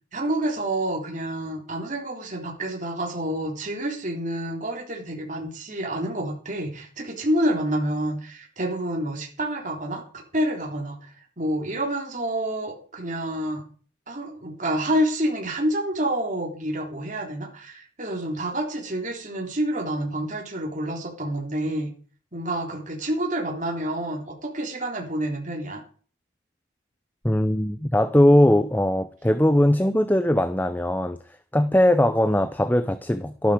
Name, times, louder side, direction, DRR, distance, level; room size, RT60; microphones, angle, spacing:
voice 1, 0.1-13.6 14.1-21.9 22.3-25.8, right 1 dB, 40° right, 3.5 m, -28 dB
voice 2, 27.2-31.2 31.5-33.5, left 1 dB, 10° left, 0.6 m, -20 dB
13.0 x 12.0 x 5.0 m
head